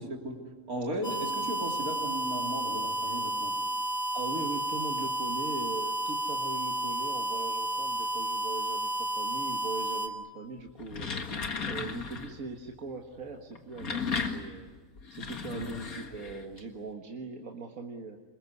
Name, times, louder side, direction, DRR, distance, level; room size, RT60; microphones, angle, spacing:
voice 1, 0.0-3.5 15.5-15.8, right 1 dB, 85° right, 1 dB, 3.8 m, -36 dB
sound 1, 1.0-10.1, right 1 dB, 30° left, 2.2 m, -32 dB
voice 2, 4.1-14.7 15.1-18.2, right 3 dB, 70° right, 2 dB, 2.0 m, -40 dB
sound 2, 10.7-12.4 13.5-16.6, left 5 dB, 90° left, 2.3 m, -35 dB
26.5 x 21.5 x 9.6 m, 1.4 s
omnidirectional pair, 1.5 m